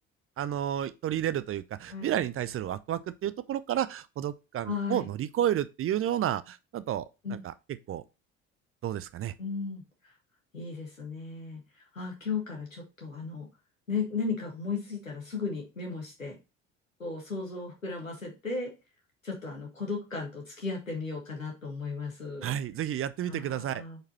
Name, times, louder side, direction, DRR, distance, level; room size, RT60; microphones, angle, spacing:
voice 1, 0.4-7.5 7.9-8.0 8.8-9.3 22.4-23.8, right 11 dB, 35° right, 0.6 m, -31 dB
voice 2, 4.6-5.1 7.2-7.4 9.4-9.8 10.5-11.6 11.9-13.5 13.9-16.4 17.0-18.7 19.2-22.5 23.3-24.0, left 4 dB, 90° left, 1.8 m, -35 dB
7.6 x 4.9 x 2.9 m
figure-of-eight pair, 55°, 38 cm